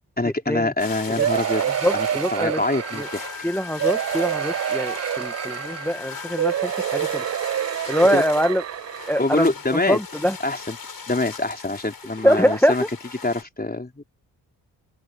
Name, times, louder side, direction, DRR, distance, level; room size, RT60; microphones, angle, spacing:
voice 1, 0.2-1.6 1.9-3.5 8.1-8.2 9.2-10.0 10.4-10.8 11.1-12.8 13.2-14.0, left 2 dB, 20° left, 3.8 m, -25 dB
sound 1, 0.8-13.4, left 5 dB, 55° left, 6.9 m, -39 dB
sound 2, 1.2-3.3 3.8-6.0 6.4-9.2 9.8-9.9 10.2-10.3, right 10 dB, 40° right, 0.4 m, -27 dB
voice 2, 1.8-2.6 2.9-3.1 3.4-7.2 7.9-8.6 9.1-9.5 9.9-10.4 12.2-12.8, equal, 5° left, 1.4 m, -23 dB
Wind instrument woodwind instrument, 2.8-6.7, left 3 dB, 85° left, 3.4 m, -39 dB
open air
cardioid pair, 50°, 42 cm